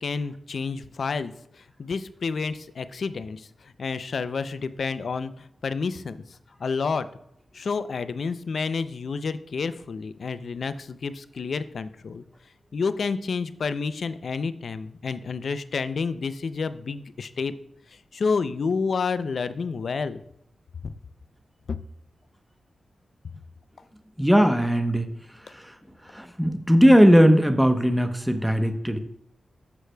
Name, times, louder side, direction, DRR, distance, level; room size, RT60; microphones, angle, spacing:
voice 1, 0.0-1.3 1.8-3.5 3.8-6.2 6.6-7.1 7.5-12.2 12.7-17.5 18.1-20.2 20.8-20.9 21.7-21.8, left 5 dB, 70° left, 13 dB, 0.4 m, -29 dB
voice 2, 24.2-25.1 26.1-29.0, equal, 5° right, 7 dB, 0.8 m, -18 dB
13.0 x 4.7 x 2.2 m, 0.75 s
cardioid pair, 50°, 0 cm